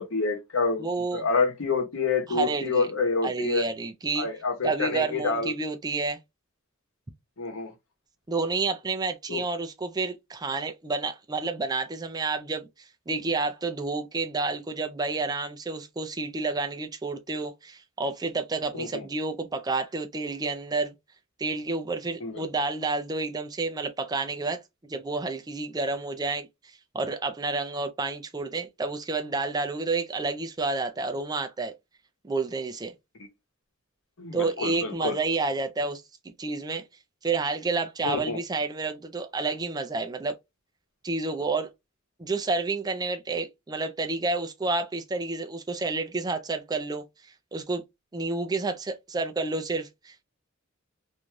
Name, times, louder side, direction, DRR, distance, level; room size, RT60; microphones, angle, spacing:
voice 1, 0.0-3.7 4.2-5.5 7.4-7.7 9.3-9.4 18.8-19.0 22.2-22.4 34.2-35.2 38.0-38.4, left 4 dB, 90° left, 0.9 m, -28 dB
voice 2, 0.8-1.2 2.3-2.9 3.2-4.3 4.6-6.2 8.3-12.7 13.1-20.9 21.4-24.6 24.9-31.7 32.2-32.9 34.3-36.8 37.2-40.3 41.0-41.7 42.2-47.8 48.1-50.2, right 3 dB, 20° right, 0.4 m, -30 dB
2.6 x 2.3 x 3.1 m
head